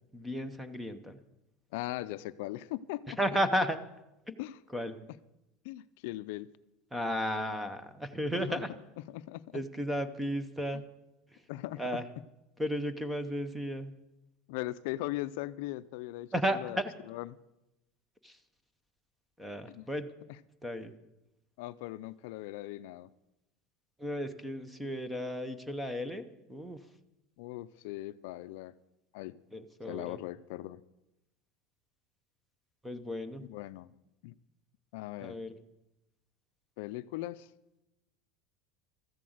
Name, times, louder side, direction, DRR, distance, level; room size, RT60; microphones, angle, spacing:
voice 1, 0.1-1.2 3.1-3.8 4.7-5.0 6.9-8.7 9.5-10.8 11.3-11.5 11.8-12.0 12.6-14.0 16.3-16.9 18.2-18.4 19.4-20.1 20.6-20.9 24.0-26.9 29.5-30.2 32.8-33.5 35.2-35.5, equal, 5° right, 11 dB, 0.7 m, -34 dB
voice 2, 1.7-3.2 4.4-4.6 5.6-6.5 8.4-8.6 9.1-9.6 11.5-11.8 14.5-16.3 16.6-16.8 17.1-17.4 19.7-19.9 21.6-23.1 27.4-28.7 29.1-29.4 29.9-30.8 33.5-33.9 34.2-34.3 34.9-35.4 36.8-37.5, left 16 dB, 65° left, 14 dB, 0.4 m, -39 dB
13.5 x 7.5 x 7.9 m, 0.93 s
supercardioid pair, 170°, 0 cm